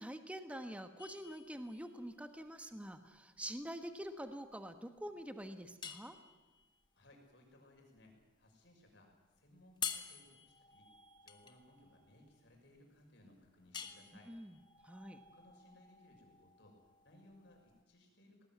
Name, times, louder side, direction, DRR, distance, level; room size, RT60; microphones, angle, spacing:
voice 1, 0.0-6.2 14.3-14.6 14.8-15.2, equal, 5° right, 8 dB, 1.1 m, -46 dB
sound 1, 1.0-17.8, left 7 dB, 25° left, 1.3 m, -50 dB
voice 2, 6.9-8.1 8.4-9.1 9.4-10.9 11.2-14.3 15.3-16.7 17.0-18.5, left 1 dB, 65° left, 2 dB, 6.1 m, -63 dB
19.5 x 19.5 x 9.2 m, 1.2 s
head